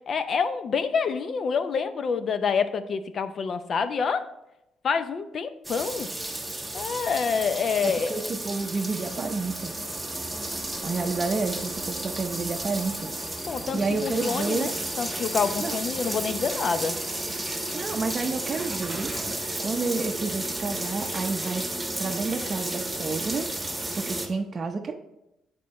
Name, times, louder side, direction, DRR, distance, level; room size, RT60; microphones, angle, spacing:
voice 1, 0.1-4.3 4.8-6.1 6.7-8.2 13.5-14.7 15.0-17.0, left 5 dB, 55° left, 11 dB, 0.6 m, -27 dB
sound 1, 5.6-24.3, right 2 dB, 10° right, 1.3 m, -33 dB
voice 2, 7.8-9.7 10.8-13.1 13.5-14.7 15.6-15.8 17.7-19.1 19.6-21.7 22.0-23.5 24.0-24.9, right 4 dB, 35° right, 3 dB, 0.7 m, -30 dB
sound 2, 9.0-17.9, left 1 dB, 25° left, 1.1 m, -47 dB
8.4 x 4.5 x 4.2 m, 0.88 s
cardioid pair, 90°, 0 cm